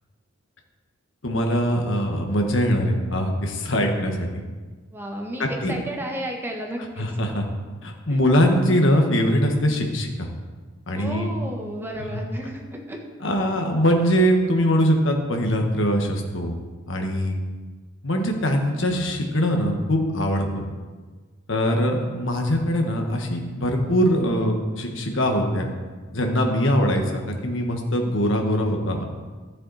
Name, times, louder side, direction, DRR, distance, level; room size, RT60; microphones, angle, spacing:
voice 1, 1.2-4.4 5.4-5.7 7.0-7.5 7.8-10.3 10.9-11.3 12.1-12.2 13.2-16.6 16.9-17.4 18.0-20.6 21.5-25.7 26.1-29.0, equal, 65° left, 3 dB, 1.5 m, -22 dB
voice 2, 4.9-7.1 8.1-8.2 10.9-13.0, right 1 dB, 10° right, 1 dB, 1.3 m, -32 dB
12.5 x 7.5 x 4.1 m, 1.4 s
head